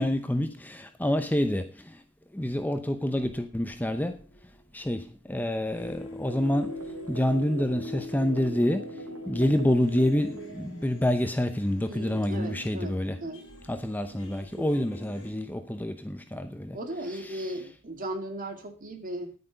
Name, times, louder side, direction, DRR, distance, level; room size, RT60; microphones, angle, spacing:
voice 1, 0.0-1.7 2.3-4.2 4.7-5.0 5.3-6.8 7.1-8.9 9.3-13.2 13.7-16.8 17.2-17.5, left 1 dB, 10° left, 0.7 m, -27 dB
sound 1, 3.2-5.1 5.7-15.3, left 2 dB, 65° left, 4.7 m, -45 dB
sound 2, 6.3-11.4, right 4 dB, 70° right, 0.8 m, -42 dB
voice 2, 11.9-13.5 14.6-14.8 16.7-19.3, right 1 dB, 40° right, 2.4 m, -37 dB
10.5 x 9.6 x 5.3 m
head